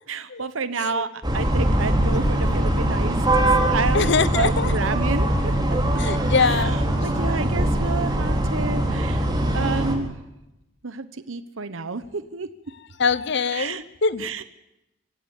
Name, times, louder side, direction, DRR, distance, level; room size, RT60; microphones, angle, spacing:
voice 1, 0.1-4.1 4.3-5.5 6.4-6.8 7.0-10.2 10.8-12.5 13.5-13.8 14.2-14.4, right 4 dB, 90° right, 12 dB, 1.1 m, -30 dB
sound 1, 1.2-9.9, right 1 dB, 20° right, 4.2 m, -22 dB
voice 2, 3.9-4.7 6.0-7.3 13.0-14.3, left 5 dB, 60° left, 17 dB, 0.9 m, -24 dB
26.0 x 16.0 x 7.2 m, 0.90 s
head